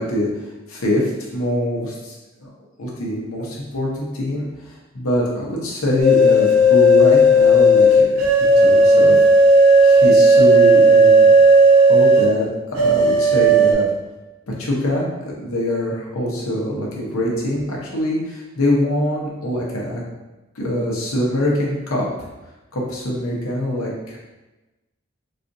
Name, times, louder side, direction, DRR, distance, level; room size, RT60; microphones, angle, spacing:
voice 1, 0.0-2.5 2.8-9.2 9.8-11.3 11.9-12.5 12.7-13.9 14.5-20.0 20.5-22.0 22.7-24.2, equal, 80° left, -3 dB, 0.9 m, -24 dB
sound 1, 6.0-12.3 12.8-13.7, right 1 dB, 85° right, 0.8 m, -12 dB
4.1 x 2.5 x 2.6 m, 1.1 s
head